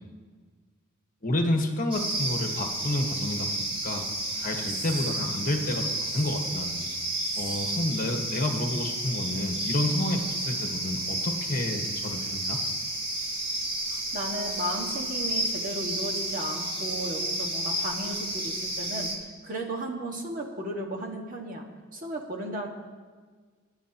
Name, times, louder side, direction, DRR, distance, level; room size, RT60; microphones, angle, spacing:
voice 1, 1.2-4.1 4.3-6.8 7.4-12.6, left 1 dB, 40° left, 3 dB, 1.3 m, -30 dB
sound 1, 1.9-19.2, right 1 dB, 25° right, 1.8 m, -31 dB
voice 2, 14.1-19.1 19.4-21.7 21.9-22.7, right 1 dB, 40° right, 1 dB, 1.6 m, -34 dB
24.5 x 10.5 x 2.9 m, 1.5 s
head